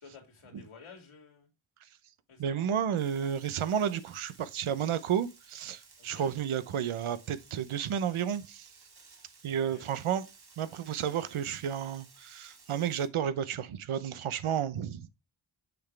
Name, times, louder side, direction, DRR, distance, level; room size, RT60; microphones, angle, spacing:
voice 1, 0.0-1.5 2.3-2.7 6.0-6.3 9.5-9.9 10.6-10.7, left 5 dB, 85° left, 2.7 m, -53 dB
voice 2, 2.4-8.7 9.4-10.2 10.6-15.1, right 8 dB, 90° right, 0.8 m, -32 dB
Frying (food), 3.0-13.1, right 4 dB, 50° right, 1.7 m, -57 dB
6.9 x 5.9 x 3.3 m
wide cardioid pair, 75°, 48 cm